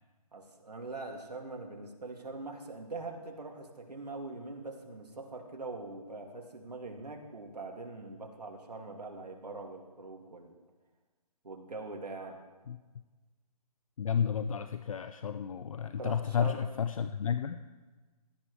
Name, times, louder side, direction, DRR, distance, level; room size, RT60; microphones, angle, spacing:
voice 1, 0.3-10.6 11.4-12.4 16.0-16.6, right 3 dB, 85° right, 2 dB, 2.3 m, -43 dB
voice 2, 14.0-17.6, left 7 dB, 60° left, 11 dB, 0.6 m, -32 dB
16.5 x 12.5 x 3.2 m, 1.3 s
hypercardioid pair, 155°, 20 cm